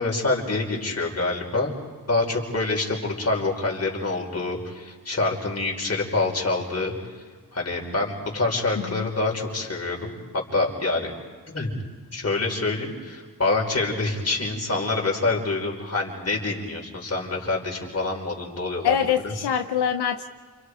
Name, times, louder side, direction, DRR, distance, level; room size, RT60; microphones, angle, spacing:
voice 1, 0.0-1.7 2.1-6.9 7.5-10.1 10.5-11.1 11.5-11.7 12.1-18.9 19.2-19.3, left 3 dB, 40° left, 0 dB, 5.7 m, -26 dB
voice 2, 18.8-20.2, left 8 dB, 90° left, 6 dB, 1.0 m, -24 dB
30.0 x 27.5 x 5.0 m, 1.5 s
cardioid pair, 85°, 38 cm